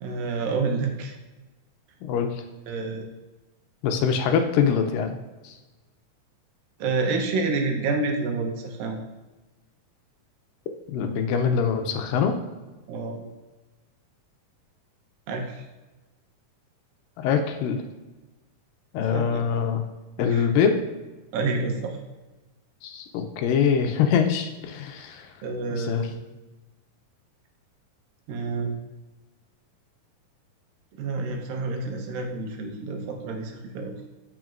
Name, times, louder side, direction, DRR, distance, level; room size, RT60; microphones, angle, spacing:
voice 1, 0.0-1.2 2.7-3.1 6.8-9.0 12.9-13.3 15.3-15.6 19.1-19.4 20.3-20.5 21.3-22.0 25.4-26.1 28.3-28.7 30.9-33.9, right 3 dB, 90° right, 2 dB, 2.7 m, -28 dB
voice 2, 2.0-2.4 3.8-5.2 5.4-5.6 10.9-12.3 17.2-17.8 18.9-19.8 20.2-20.8 22.8-25.3 25.7-26.1, left 7 dB, 90° left, 6 dB, 2.3 m, -24 dB
8.8 x 6.3 x 2.6 m, 1.1 s
omnidirectional pair, 4.0 m